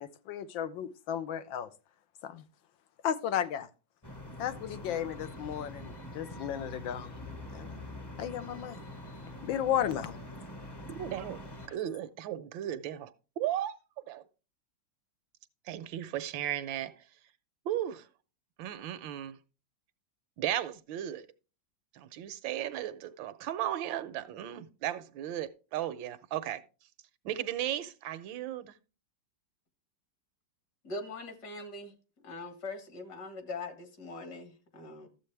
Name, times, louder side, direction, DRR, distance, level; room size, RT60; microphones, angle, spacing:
voice 1, 0.0-1.7 2.2-2.4 3.0-3.7 4.4-7.1 7.5-7.9 8.2-8.8 9.4-10.2, left 10 dB, 90° left, 1.6 m, -34 dB
sound 1, 4.0-11.7, left 1 dB, 20° left, 0.6 m, -44 dB
voice 2, 10.9-11.4 11.7-13.7 14.1-14.2 15.7-17.0 17.6-18.1 18.6-19.4 20.4-21.3 21.9-26.6 27.2-28.8, right 11 dB, 90° right, 1.5 m, -35 dB
voice 3, 30.8-31.9 32.2-35.1, left 3 dB, 60° left, 2.2 m, -42 dB
13.5 x 7.6 x 3.3 m
omnidirectional pair, 2.0 m